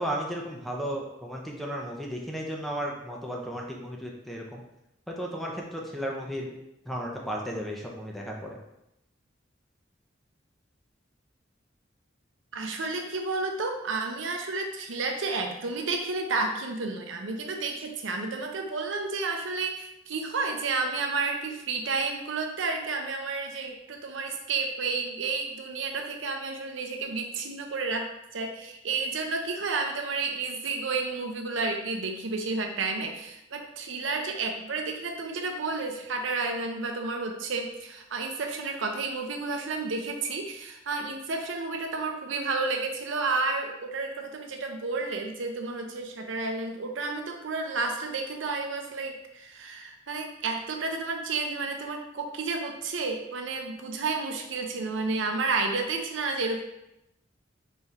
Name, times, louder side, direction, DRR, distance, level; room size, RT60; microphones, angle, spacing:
voice 1, 0.0-4.6 5.1-6.5 6.9-8.6, equal, ahead, -1 dB, 0.6 m, -34 dB
voice 2, 12.5-28.1 28.3-56.6, right 3 dB, 80° right, 3 dB, 0.6 m, -31 dB
4.1 x 3.3 x 3.6 m, 0.86 s
head